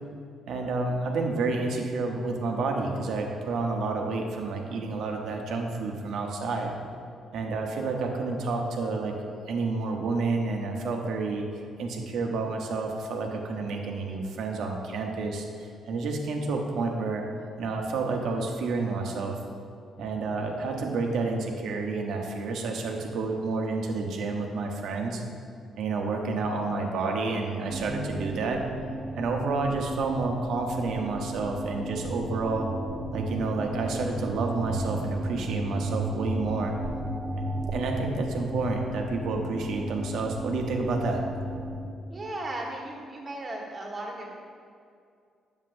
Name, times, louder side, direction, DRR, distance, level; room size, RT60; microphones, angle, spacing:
voice 1, 0.5-6.7 7.3-9.1 9.5-11.4 11.8-17.2 17.6-19.4 20.0-25.2 25.8-28.6 29.1-32.7 33.1-36.8 37.4-37.5 37.7-41.2, right 3 dB, 75° right, 2 dB, 0.9 m, -29 dB
sound 1, 27.7-41.8, right 1 dB, 55° right, 1.1 m, -34 dB
voice 2, 42.1-44.3, right 1 dB, 35° right, -1 dB, 1.4 m, -36 dB
7.5 x 7.3 x 2.6 m, 2.3 s
cardioid pair, 90°, 0 cm